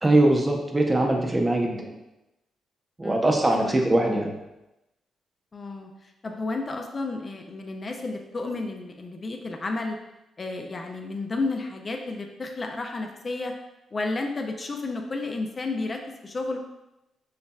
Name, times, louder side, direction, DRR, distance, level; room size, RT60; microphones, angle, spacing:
voice 1, 0.0-1.9 3.0-4.3, right 1 dB, 25° right, 1 dB, 0.7 m, -22 dB
voice 2, 3.0-3.9 5.5-10.0 10.4-13.5 13.9-16.6, left 3 dB, 40° left, 4 dB, 0.4 m, -32 dB
5.5 x 2.1 x 2.3 m, 0.93 s
supercardioid pair, 55°, 0 cm